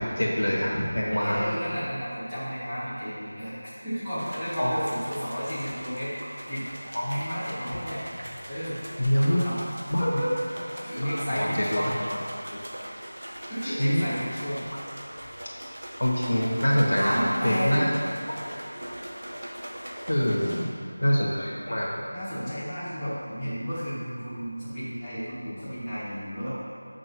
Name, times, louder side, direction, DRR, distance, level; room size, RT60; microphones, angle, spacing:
voice 1, 0.0-1.4 4.6-4.7 6.9-7.2 9.0-9.4 9.9-10.1 11.0-11.9 12.5-12.6 13.6-14.0 16.0-17.2 17.4-17.9 18.3-18.6 20.1-20.4 21.0-21.9, equal, 80° left, -4 dB, 1.8 m, -25 dB
voice 2, 1.1-6.1 6.4-6.8 7.1-8.0 8.5-8.8 9.1-9.7 10.0-10.3 10.8-11.9 13.5-14.6 16.9-17.7 20.3-20.7 22.1-26.6, equal, ahead, -23 dB, 1.3 m, -32 dB
sound 1, 4.2-20.7, equal, 80° right, 1.0 m, -41 dB
9.0 x 6.1 x 3.0 m, 2.6 s
figure-of-eight pair, 175°, 0 cm